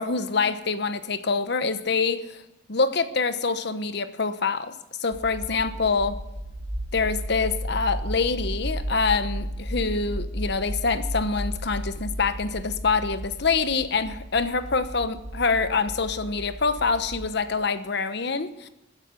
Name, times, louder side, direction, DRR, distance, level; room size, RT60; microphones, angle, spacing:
voice 1, 0.0-2.4 2.7-4.7 5.0-6.2 6.9-18.7, left 4 dB, 60° left, 11 dB, 1.0 m, -25 dB
sound 1, 5.1-17.3, equal, 65° right, 2.9 m, -34 dB
14.0 x 10.5 x 8.4 m, 0.92 s
head